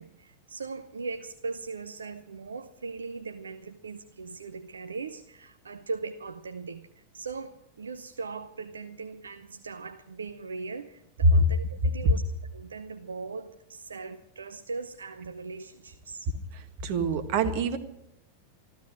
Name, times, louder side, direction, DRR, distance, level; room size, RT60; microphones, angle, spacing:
voice 1, 0.0-6.8 7.1-12.2 12.5-16.3, right 4 dB, 70° right, 8 dB, 0.7 m, -39 dB
voice 2, 16.8-17.8, right 1 dB, 45° right, 9 dB, 1.6 m, -22 dB
14.5 x 13.5 x 6.2 m, 0.83 s
figure-of-eight pair, 90°, 0 cm